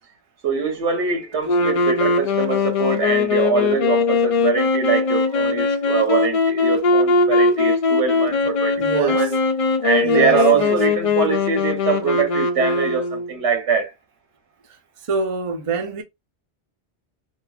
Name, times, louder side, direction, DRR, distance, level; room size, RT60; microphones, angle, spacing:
voice 1, 0.4-9.4 9.8-13.9, right 6 dB, 85° right, 1.3 m, -23 dB
sound 1, 1.4-13.3, left 4 dB, 55° left, 0.3 m, -20 dB
voice 2, 8.8-9.2 10.0-10.7 15.1-16.0, right 3 dB, 40° right, 0.6 m, -25 dB
3.0 x 2.4 x 2.4 m
omnidirectional pair, 1.1 m